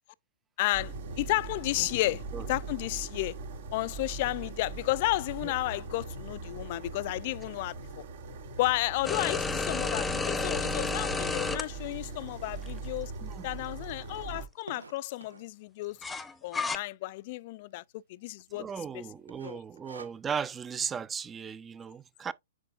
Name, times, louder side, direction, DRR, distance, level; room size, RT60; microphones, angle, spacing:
voice 1, 0.6-3.3 3.7-7.8 8.6-13.1 13.4-16.0 16.4-18.7 18.9-19.0 19.4-19.6, left 19 dB, 45° left, 0.4 m, -32 dB
sound 1, 0.7-14.5, right 3 dB, 55° right, 2.5 m, -40 dB
sound 2, 9.0-11.6 12.7-12.8 16.0-16.8, left 4 dB, 10° left, 0.8 m, -31 dB
sound 3, 14.7-15.6 16.3-16.7 17.0-17.1 17.3-17.4 18.0-18.3 18.6-18.9 19.3-20.6, right 4 dB, 85° right, 1.5 m, -49 dB
voice 2, 18.5-22.3, right 7 dB, 15° right, 0.5 m, -36 dB
9.6 x 5.0 x 2.5 m
hypercardioid pair, 125°, 0 cm